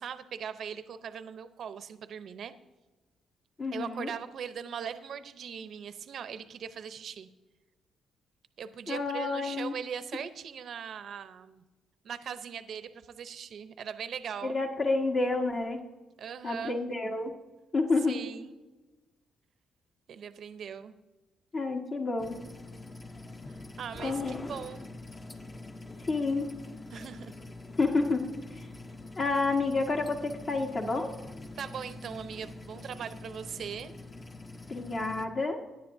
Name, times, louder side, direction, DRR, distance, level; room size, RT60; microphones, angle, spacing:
voice 1, 0.0-2.5 3.7-7.3 8.6-11.6 12.0-14.6 16.2-16.8 18.1-18.5 20.1-21.0 23.5-24.9 26.9-27.4 31.6-33.9, right 7 dB, 60° right, 11 dB, 0.7 m, -40 dB
voice 2, 3.6-4.1 8.9-9.7 14.4-15.8 16.4-17.3 17.7-18.2 21.5-22.4 24.0-24.3 26.1-26.5 27.8-28.3 28.5-28.7 29.2-31.1 34.7-35.6, left 3 dB, 45° left, 1 dB, 1.5 m, -29 dB
sound 1, 22.2-35.3, left 2 dB, 25° left, 0.9 m, -45 dB
17.5 x 10.5 x 2.7 m, 1.1 s
cardioid pair, 90°, 0 cm